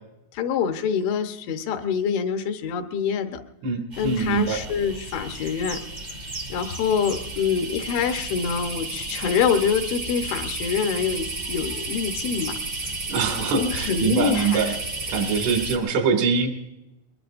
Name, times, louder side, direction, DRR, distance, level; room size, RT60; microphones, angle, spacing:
voice 1, 0.3-3.4 4.0-5.8 6.5-12.5 13.5-14.6, left 7 dB, 80° left, 6 dB, 3.4 m, -25 dB
voice 2, 3.6-4.6 13.1-14.7 15.1-16.5, right 5 dB, 85° right, 4 dB, 4.8 m, -23 dB
sound 1, 3.9-15.8, right 2 dB, 55° right, 0.7 m, -33 dB
22.0 x 21.5 x 2.6 m, 0.90 s
omnidirectional pair, 5.5 m